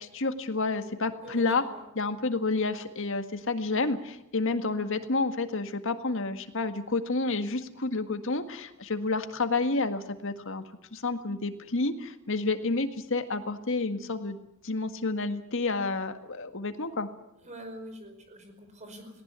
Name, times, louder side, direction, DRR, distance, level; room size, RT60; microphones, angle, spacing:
voice 1, 0.1-1.6 2.0-10.6 10.9-14.4 14.6-17.1, left 3 dB, 65° left, 8 dB, 1.8 m, -30 dB
voice 2, 1.2-1.8 17.4-19.2, equal, 35° right, 6 dB, 5.2 m, -45 dB
19.0 x 18.5 x 9.5 m, 0.86 s
head